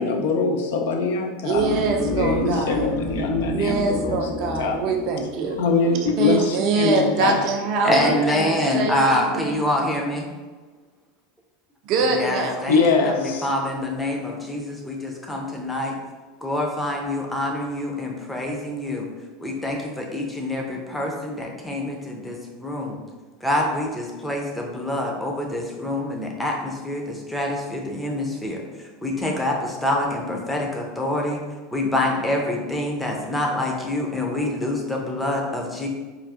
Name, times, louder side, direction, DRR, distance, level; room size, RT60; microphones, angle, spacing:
voice 1, 0.0-1.6 2.1-4.2 4.6-4.8 5.6-7.5 12.7-13.5, left 4 dB, 60° left, 2 dB, 0.4 m, -23 dB
voice 2, 1.4-3.0 3.5-5.6 6.2-9.6 11.8-12.7, right 3 dB, 45° right, 3 dB, 0.4 m, -24 dB
sound 1, 1.6-6.8, left 2 dB, 45° left, 1.1 m, -30 dB
voice 3, 7.8-10.3 12.0-15.9 16.4-19.1 19.4-23.0 23.4-28.6 29.0-31.4 31.7-35.9, left 1 dB, 5° left, 0 dB, 0.6 m, -26 dB
4.5 x 2.3 x 2.4 m, 1.4 s
figure-of-eight pair, 80°, 0 cm